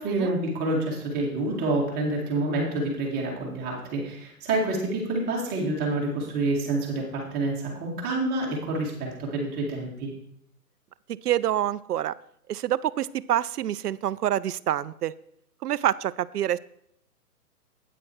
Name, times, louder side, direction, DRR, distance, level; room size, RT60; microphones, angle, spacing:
voice 1, 0.0-10.1, right 2 dB, 20° right, -2 dB, 2.3 m, -28 dB
voice 2, 11.2-12.1 12.5-15.1 15.6-16.6, right 11 dB, 75° right, 17 dB, 0.6 m, -26 dB
9.1 x 8.2 x 4.6 m, 0.68 s
hypercardioid pair, 145°, 47 cm